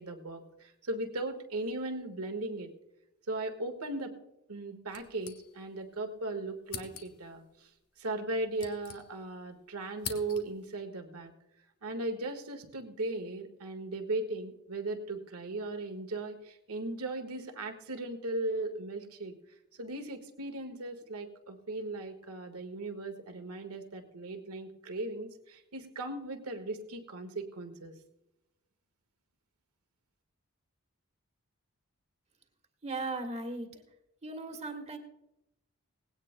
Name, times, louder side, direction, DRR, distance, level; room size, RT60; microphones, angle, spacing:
voice 1, 0.0-2.7 3.3-4.2 4.5-7.7 8.0-11.3 11.8-19.3 19.8-27.9, right 2 dB, 80° right, 6 dB, 1.6 m, -37 dB
sound 1, 4.9-5.9 6.2-6.3 6.6-7.3 8.2-9.5 9.7-10.7, left 7 dB, 70° left, 1.4 m, -45 dB
voice 2, 32.8-33.7 34.2-35.0, right 3 dB, 30° right, 5 dB, 1.6 m, -37 dB
19.5 x 17.0 x 2.2 m, 0.89 s
head